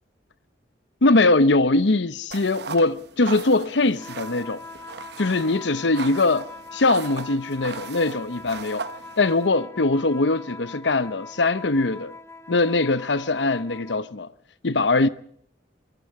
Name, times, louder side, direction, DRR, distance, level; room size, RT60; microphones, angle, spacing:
voice 1, 1.0-4.6 5.2-8.8 9.2-12.2 12.5-14.3 14.6-15.1, left 2 dB, 70° left, 0.9 m, -21 dB
sound 1, 2.3-9.5, right 5 dB, 60° right, 0.9 m, -38 dB
sound 2, 3.9-14.1, left 3 dB, 15° left, 1.1 m, -42 dB
24.5 x 22.5 x 4.8 m
head